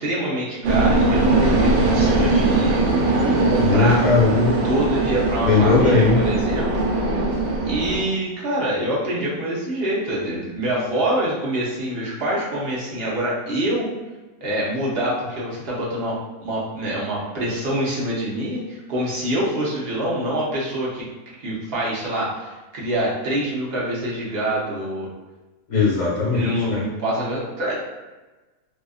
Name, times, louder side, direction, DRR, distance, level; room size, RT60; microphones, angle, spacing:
voice 1, 0.0-2.9 3.5-4.0 4.6-6.9 7.7-13.9 14.4-21.0 21.4-25.1 26.3-27.8, right 1 dB, 55° right, -5 dB, 0.8 m, -25 dB
sound 1, 0.6-8.0, right 2 dB, 75° right, 1.0 m, -20 dB
voice 2, 3.6-4.5 5.4-6.2 25.7-26.9, left 4 dB, 50° left, -6 dB, 1.3 m, -18 dB
2.7 x 2.3 x 2.3 m, 1.2 s
omnidirectional pair, 1.5 m